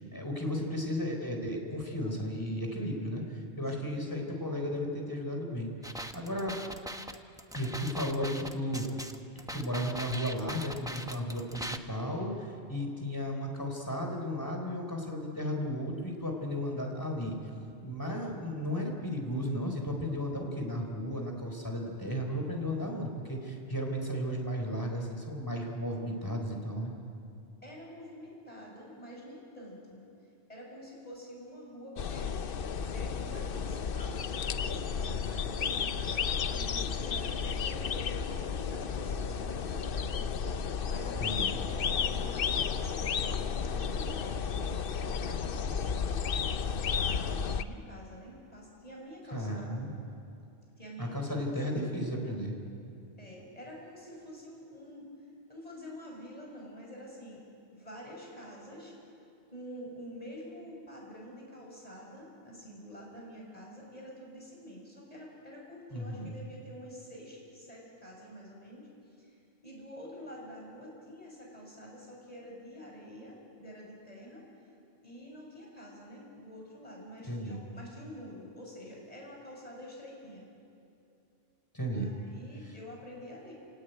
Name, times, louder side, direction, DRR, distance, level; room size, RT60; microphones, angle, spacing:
voice 1, 0.0-5.7 6.1-6.7 7.5-9.0 9.3-17.4 17.8-26.9 41.2-41.5 49.3-49.9 51.0-52.6 65.9-66.3 77.3-77.6 81.7-82.1, equal, 20° left, 2 dB, 4.1 m, -34 dB
sound 1, 5.8-11.8, equal, 5° right, 0.9 m, -41 dB
voice 2, 27.6-30.0 30.5-32.6 32.9-40.3 40.5-44.6 45.0-46.2 46.9-49.9 50.8-52.0 53.2-55.1 55.5-57.4 57.7-58.9 59.5-68.9 69.2-69.4 69.6-74.5 75.0-80.5 81.9-83.5, equal, 35° left, -3 dB, 7.5 m, -47 dB
sound 2, 32.0-47.6, left 6 dB, 60° left, 0.9 m, -32 dB
29.5 x 18.5 x 9.2 m, 2.7 s
omnidirectional pair, 1.1 m